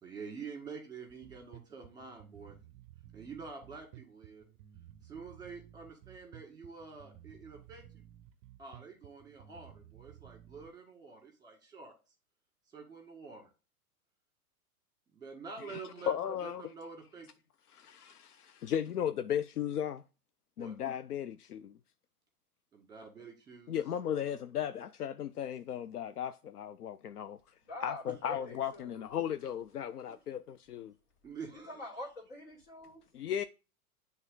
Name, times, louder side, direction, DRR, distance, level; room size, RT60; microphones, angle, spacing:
voice 1, 0.0-2.5 3.1-4.4 5.0-8.1 8.6-11.9 12.7-13.5 15.1-16.1 16.4-17.3 20.6-20.7 22.7-23.8 31.2-32.0, right 5 dB, 10° right, 1.8 m, -47 dB
Bass guitar, 1.1-10.7, right 12 dB, 30° right, 0.5 m, -55 dB
voice 2, 15.6-16.6 17.7-20.0 20.6-21.8 23.7-27.4 27.8-30.9 33.1-33.4, left 9 dB, 80° left, 0.5 m, -36 dB
voice 3, 27.7-29.1 31.5-33.0, left 2 dB, 60° left, 2.9 m, -45 dB
9.0 x 3.6 x 3.8 m
figure-of-eight pair, 105°, 45 cm